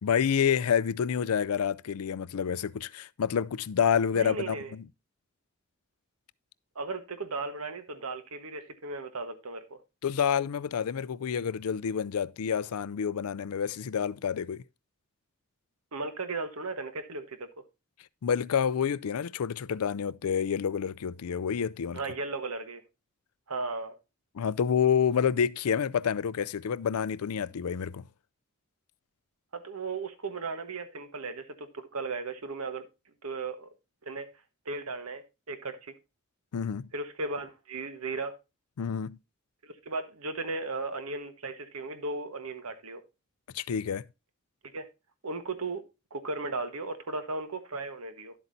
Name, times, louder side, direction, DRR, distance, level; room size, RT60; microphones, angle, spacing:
voice 1, 0.0-4.8 10.0-14.6 18.2-22.0 24.3-28.0 36.5-36.9 38.8-39.2 43.5-44.0, left 7 dB, 85° left, 0.4 m, -28 dB
voice 2, 4.1-4.7 6.7-9.8 15.9-17.6 21.9-22.8 23.5-23.9 29.5-32.9 33.2-33.7 34.0-34.3 34.6-35.9 36.9-38.4 39.6-43.0 44.7-44.9 45.2-45.8 46.1-48.3, right 3 dB, 85° right, 1.3 m, -36 dB
11.0 x 8.0 x 2.7 m
head